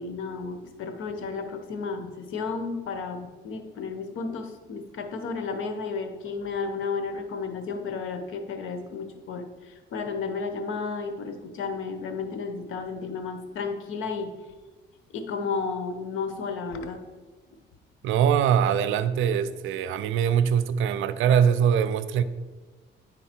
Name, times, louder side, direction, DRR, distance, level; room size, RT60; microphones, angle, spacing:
voice 1, 0.0-14.3 15.1-17.0, left 4 dB, 85° left, 7 dB, 0.9 m, -33 dB
voice 2, 18.0-22.2, right 8 dB, 85° right, 14 dB, 0.5 m, -22 dB
10.0 x 3.9 x 4.4 m, 1.3 s
cardioid pair, 90°, 20 cm